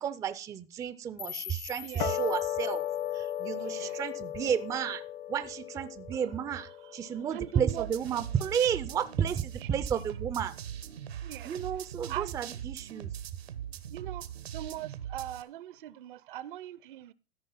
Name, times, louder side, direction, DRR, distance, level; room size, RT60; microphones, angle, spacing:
voice 1, 0.0-2.9 3.1-5.0 5.3-10.5 11.4-13.1, right 8 dB, 10° right, 0.4 m, -32 dB
sound 1, 1.2-4.2, left 10 dB, 85° left, 1.6 m, -45 dB
voice 2, 1.8-2.2 3.6-4.0 6.1-6.2 6.8-7.9 9.6-9.7 11.2-11.5 12.1-12.4 13.9-14.3 14.5-17.1, right 13 dB, 60° right, 0.7 m, -40 dB
sound 2, 2.0-8.5, left 12 dB, 50° left, 0.9 m, -36 dB
sound 3, 7.7-15.4, right 9 dB, 85° right, 1.2 m, -41 dB
13.5 x 5.2 x 5.6 m
hypercardioid pair, 120°, 30 cm